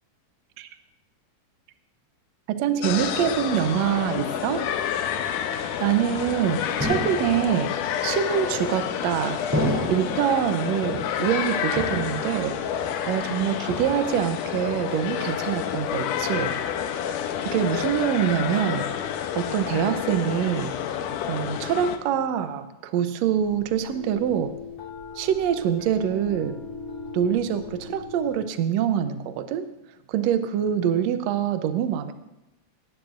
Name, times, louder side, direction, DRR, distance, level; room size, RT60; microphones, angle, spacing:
voice 1, 2.5-4.7 5.8-7.7 8.0-9.4 9.9-12.6 13.1-16.5 17.4-18.9 19.4-20.7 21.3-24.5 25.1-26.6 27.1-29.7 30.1-32.1, right 9 dB, 70° right, 9 dB, 1.7 m, -25 dB
sound 1, 2.8-22.0, left 9 dB, 80° left, 2.3 m, -29 dB
sound 2, 6.8-7.7 8.5-9.0 9.5-10.3 10.8-11.4 11.8-12.5 12.8-13.3 13.7-14.3, equal, 5° right, 2.7 m, -31 dB
sound 3, 23.4-28.4, left 5 dB, 50° left, 4.4 m, -39 dB
19.0 x 16.5 x 2.6 m, 0.94 s
omnidirectional pair, 3.8 m